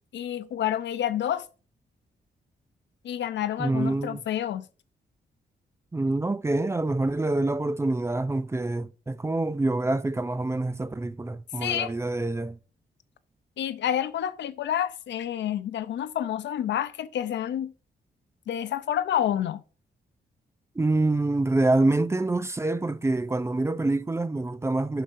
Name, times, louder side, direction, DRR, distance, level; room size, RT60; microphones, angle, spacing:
voice 1, 0.1-1.5 3.0-4.6 11.6-11.9 13.6-17.7 18.5-19.6, left 10 dB, 80° left, 0.6 m, -29 dB
voice 2, 3.6-4.2 5.9-12.6 20.8-25.0, right 2 dB, 15° right, 0.4 m, -26 dB
11.5 x 4.9 x 2.6 m
cardioid pair, 100°, 18 cm